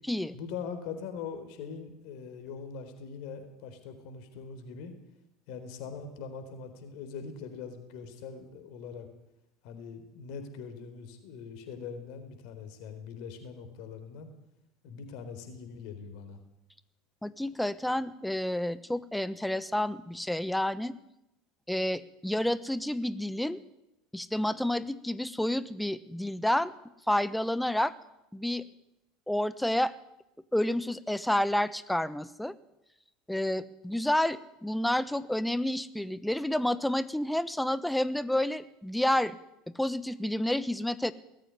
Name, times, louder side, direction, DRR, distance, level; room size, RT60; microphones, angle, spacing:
voice 1, 0.3-4.9 5.5-9.1 9.6-14.3 14.8-16.4, left 6 dB, 60° left, 8 dB, 4.0 m, -42 dB
voice 2, 17.2-20.9 21.7-23.6 24.1-26.7 27.1-27.9 28.3-28.6 29.3-29.9 30.5-32.6 33.3-39.4 39.8-41.1, left 1 dB, 5° left, 16 dB, 1.2 m, -29 dB
19.0 x 14.0 x 9.8 m, 0.87 s
figure-of-eight pair, 70°, 0 cm